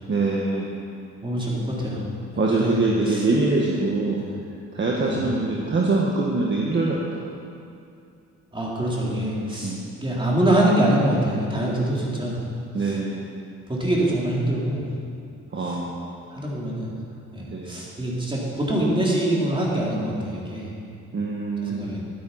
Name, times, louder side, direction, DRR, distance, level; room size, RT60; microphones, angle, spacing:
voice 1, 0.1-0.7 2.4-4.2 4.7-7.5 9.6-9.9 12.7-13.2 15.5-16.1 17.5-17.8 21.1-21.9, right 3 dB, 40° right, -2 dB, 1.5 m, -24 dB
voice 2, 1.2-2.0 2.5-2.8 3.1-3.2 4.1-4.3 5.0-5.3 8.5-12.4 12.8-12.9 13.7-14.8 15.6-15.8 16.3-16.9 17.3-20.7 21.6-22.0, right 1 dB, 15° right, -5 dB, 3.5 m, -24 dB
12.0 x 9.6 x 5.7 m, 2.5 s
cardioid pair, 90°, 30 cm